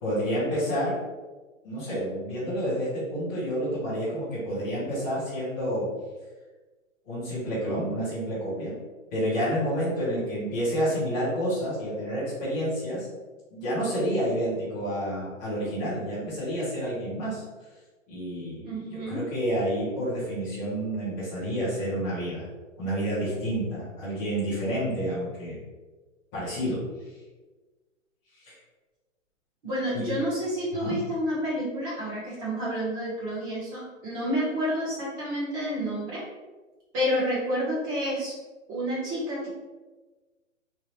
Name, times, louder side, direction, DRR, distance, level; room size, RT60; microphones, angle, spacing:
voice 1, 0.0-0.9 1.6-5.9 7.0-8.7 9.1-13.1 13.5-17.4 18.1-22.5 22.8-25.6 26.3-26.8 29.9-30.1 30.7-31.0, equal, 5° left, -14 dB, 0.4 m, -29 dB
voice 2, 18.6-19.2 29.6-36.2 36.9-38.3 38.7-39.5, equal, 25° right, -6 dB, 1.3 m, -29 dB
3.1 x 2.5 x 4.2 m, 1.3 s
hypercardioid pair, 150°, 39 cm